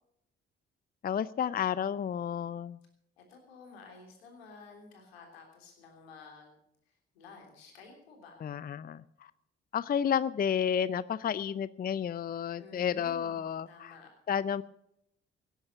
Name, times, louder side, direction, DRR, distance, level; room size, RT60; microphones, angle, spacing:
voice 1, 1.0-2.8 8.4-9.3 9.7-13.9 14.3-14.6, left 8 dB, 30° left, 18 dB, 0.5 m, -31 dB
voice 2, 3.2-6.5 7.1-8.5 12.6-13.4 13.7-14.1, left 4 dB, 80° left, 2 dB, 3.4 m, -52 dB
17.5 x 10.5 x 6.8 m, 0.76 s
figure-of-eight pair, 40°, 30 cm